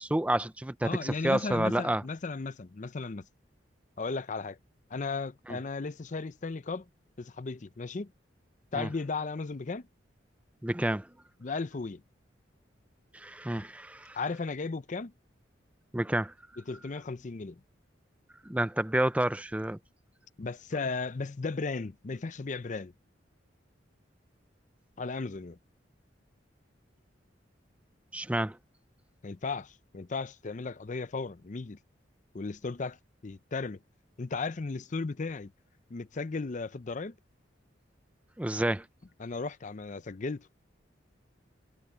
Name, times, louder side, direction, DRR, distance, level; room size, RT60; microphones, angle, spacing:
voice 1, 0.0-2.0 5.5-5.6 8.7-8.9 10.6-11.1 13.1-14.2 15.9-16.3 18.4-19.8 28.1-28.6 38.4-38.9, right 1 dB, 5° right, 0.5 m, -29 dB
voice 2, 0.8-3.3 4.0-4.6 4.9-6.9 7.2-8.1 8.7-9.9 11.4-12.0 14.1-15.1 16.7-17.6 20.4-22.9 25.0-25.6 29.2-31.8 32.3-33.0 33.2-33.8 34.2-35.5 35.9-37.2 39.2-40.5, left 4 dB, 40° left, 0.5 m, -35 dB
head